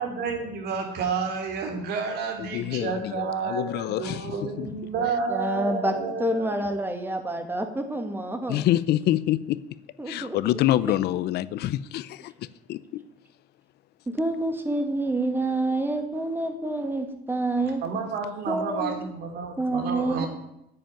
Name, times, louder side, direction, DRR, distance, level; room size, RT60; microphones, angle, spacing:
voice 1, 0.0-6.6 17.5-20.3, right 5 dB, 75° right, 3.3 m, -30 dB
voice 2, 2.4-4.8 8.5-9.8 10.1-13.0, left 13 dB, 75° left, 0.6 m, -27 dB
voice 3, 5.3-5.9 6.2-8.6 10.0-10.4 14.1-17.8 18.5-19.0 19.6-20.3, right 2 dB, 10° right, 2.2 m, -27 dB
9.9 x 7.9 x 9.2 m
cardioid pair, 110°, 17 cm